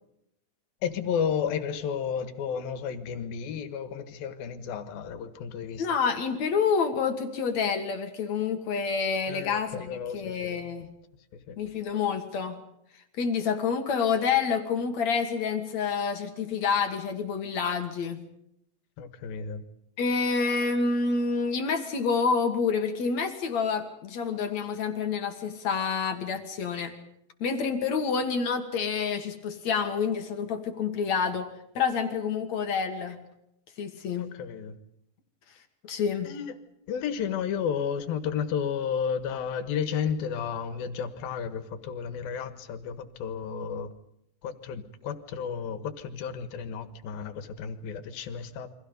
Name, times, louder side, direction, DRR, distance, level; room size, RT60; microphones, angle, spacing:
voice 1, 0.8-5.9 9.3-10.6 11.5-11.6 19.0-19.6 34.1-34.7 36.3-36.6 36.9-43.9 44.4-48.7, left 7 dB, 80° left, 3.2 m, -32 dB
voice 2, 5.8-10.9 11.6-12.6 13.2-18.2 20.0-26.9 27.4-31.5 31.7-33.2 33.8-34.3 35.8-36.3, left 5 dB, 55° left, 2.7 m, -28 dB
29.0 x 24.0 x 5.3 m
omnidirectional pair, 4.2 m